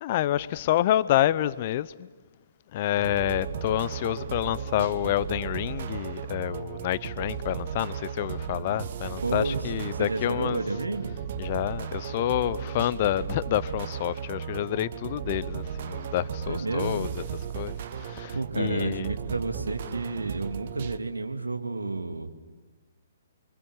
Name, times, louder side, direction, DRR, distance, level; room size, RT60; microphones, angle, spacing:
voice 1, 0.0-2.1 2.7-10.6 11.4-17.1 17.5-19.1, left 13 dB, 40° left, 0.7 m, -28 dB
sound 1, 3.0-21.0, right 8 dB, 50° right, 1.0 m, -35 dB
voice 2, 9.2-11.1 16.5-17.1 18.3-22.3, right 3 dB, 80° right, 2.6 m, -31 dB
29.0 x 25.5 x 7.3 m
figure-of-eight pair, 125°, 0 cm